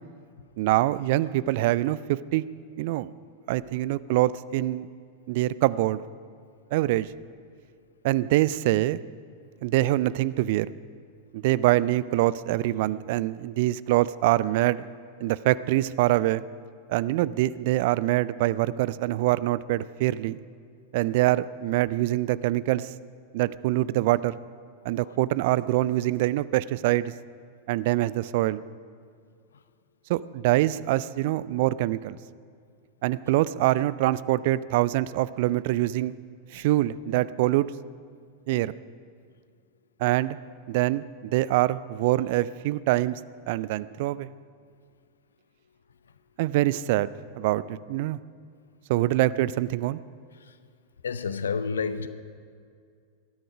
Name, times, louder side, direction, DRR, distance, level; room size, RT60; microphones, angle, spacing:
voice 1, 0.6-2.4 2.8-3.1 3.5-4.9 5.3-6.0 6.7-7.1 8.0-9.0 9.6-10.7 11.3-14.8 15.2-16.4 16.9-20.4 20.9-22.9 23.3-24.4 24.8-27.1 27.7-28.6 30.1-32.2 33.0-36.1 36.5-37.7 38.5-38.7 40.0-40.4 40.7-43.2 43.5-44.3 46.4-47.1 47.4-48.2 48.9-50.0, right 16 dB, 50° right, 18 dB, 0.4 m, -24 dB
voice 2, 51.0-52.1, left 5 dB, 70° left, 12 dB, 0.8 m, -33 dB
19.5 x 13.0 x 5.0 m, 2.3 s
figure-of-eight pair, 90°, 0 cm